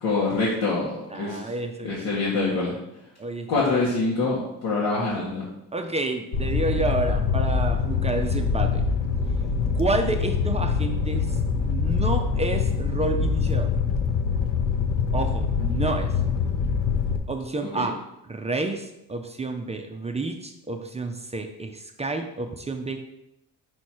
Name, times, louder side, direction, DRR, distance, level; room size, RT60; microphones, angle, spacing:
voice 1, 0.0-1.5 1.8-2.7 3.5-5.5 17.6-17.9, left 3 dB, 80° left, -7 dB, 1.7 m, -25 dB
voice 2, 1.1-2.4 3.2-3.5 5.7-8.9 9.8-13.7 15.1-16.1 17.3-18.0 18.3-23.1, right 2 dB, 15° right, 4 dB, 0.5 m, -29 dB
Fire, 6.3-17.2, left 5 dB, 60° left, 0.9 m, -24 dB
5.6 x 4.7 x 4.4 m, 0.87 s
cardioid pair, 120°, 38 cm